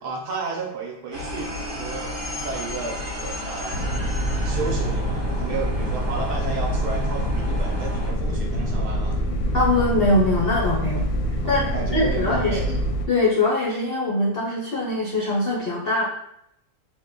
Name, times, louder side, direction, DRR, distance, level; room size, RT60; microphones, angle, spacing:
voice 1, 0.0-2.1 2.4-3.9 4.4-9.2 10.7-10.8 11.4-12.7, right 4 dB, 65° right, -1 dB, 1.2 m, -32 dB
sound 1, 1.1-8.1, left 1 dB, 45° right, 1.1 m, -33 dB
sound 2, 3.7-13.1, equal, 90° left, 1.3 m, -25 dB
voice 2, 9.5-11.1 11.5-12.6 13.1-16.0, left 2 dB, 60° left, -5 dB, 0.6 m, -22 dB
3.5 x 2.2 x 3.7 m, 0.77 s
omnidirectional pair, 1.9 m